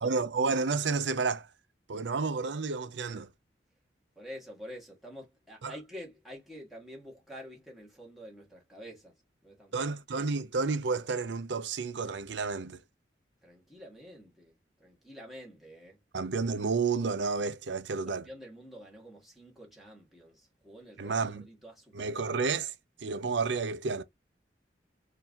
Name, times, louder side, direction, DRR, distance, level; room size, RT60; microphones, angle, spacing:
voice 1, 0.0-1.5 1.9-3.3 5.6-5.7 9.7-12.8 16.1-18.3 21.0-21.4 21.9-22.7 23.0-24.0, right 4 dB, 80° right, 0.6 m, -31 dB
voice 2, 4.1-9.1 9.4-9.9 13.4-14.5 14.8-16.0 18.1-22.3, equal, ahead, 1.7 m, -48 dB
4.5 x 2.8 x 3.6 m
head